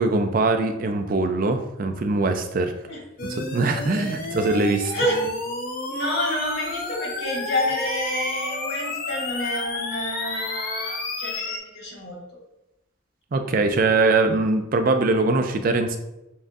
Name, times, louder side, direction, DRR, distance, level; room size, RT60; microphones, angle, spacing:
voice 1, 0.0-2.8 3.3-4.9 13.3-16.0, right 3 dB, 45° right, 7 dB, 0.4 m, -22 dB
sound 1, 3.2-11.6, left 2 dB, 45° left, 0.5 m, -31 dB
voice 2, 5.9-12.2, left 1 dB, 65° left, -3 dB, 1.5 m, -28 dB
7.1 x 2.5 x 2.6 m, 0.91 s
head